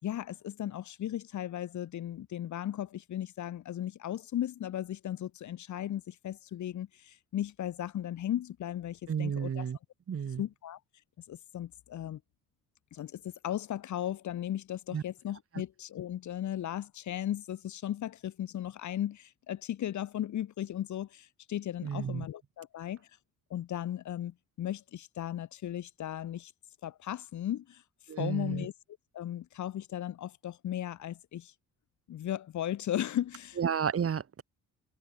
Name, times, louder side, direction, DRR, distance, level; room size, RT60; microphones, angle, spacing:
voice 1, 0.0-9.6 10.4-10.8 11.3-12.2 12.9-23.0 23.5-26.5 26.8-27.8 28.2-28.7 29.1-31.5 32.1-33.6, left 11 dB, 70° left, 3.7 m, -36 dB
voice 2, 9.1-9.8 10.1-10.4 14.9-15.0 21.8-22.3 28.1-28.7 33.6-34.4, right 7 dB, 50° right, 4.4 m, -32 dB
cardioid pair, 90°, 30 cm